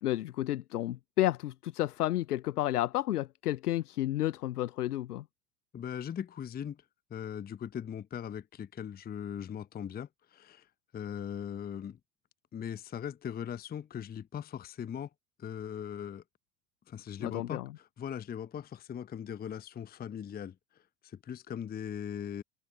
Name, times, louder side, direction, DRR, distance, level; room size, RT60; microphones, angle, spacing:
voice 1, 0.0-5.2 17.2-17.7, left 14 dB, 70° left, 0.9 m, -31 dB
voice 2, 5.7-6.8 7.1-10.7 10.9-12.0 12.5-15.1 15.4-16.2 16.9-22.4, left 8 dB, 20° left, 0.8 m, -40 dB
figure-of-eight pair, 70°, 47 cm